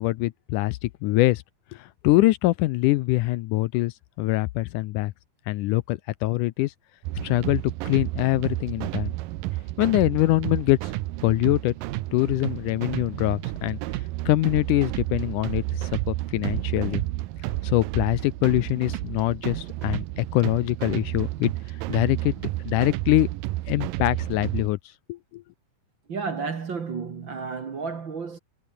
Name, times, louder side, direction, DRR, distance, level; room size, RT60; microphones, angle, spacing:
voice 1, 0.0-1.4 1.7-5.1 5.5-6.7 7.2-9.1 9.8-10.9 11.2-11.7 12.1-13.8 14.3-17.0 17.6-21.5 21.9-23.3 23.7-24.8 25.1-25.4, left 18 dB, 80° left, 2.0 m, -24 dB
Drum and Bass Techno, 7.0-24.7, right 17 dB, 90° right, 2.5 m, -31 dB
voice 2, 26.1-28.4, right 5 dB, 40° right, 2.1 m, -32 dB
omnidirectional pair, 3.9 m